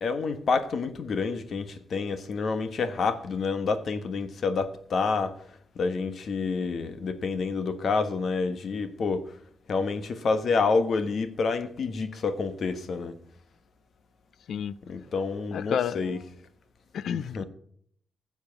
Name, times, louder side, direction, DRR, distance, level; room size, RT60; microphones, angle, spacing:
voice 1, 0.0-5.4 5.7-9.2 9.7-13.2 14.9-16.2 17.3-17.4, left 4 dB, 55° left, 1.2 m, -28 dB
voice 2, 15.5-16.1 16.9-17.4, left 8 dB, 75° left, 0.5 m, -30 dB
15.0 x 7.2 x 5.9 m
wide cardioid pair, 150°, 0 cm